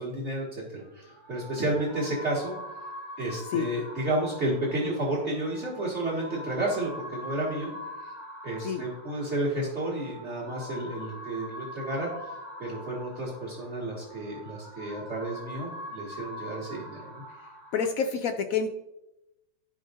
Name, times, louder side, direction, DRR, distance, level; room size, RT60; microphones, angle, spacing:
voice 1, 0.0-2.5 3.2-7.7 8.4-12.3 12.6-17.1, right 1 dB, 40° right, -8 dB, 2.2 m, -31 dB
sound 1, 0.8-17.8, left 1 dB, 55° right, 2.6 m, -43 dB
voice 2, 17.7-18.7, left 6 dB, 70° left, 6 dB, 0.8 m, -28 dB
13.5 x 5.0 x 2.6 m, 0.92 s
omnidirectional pair, 1.9 m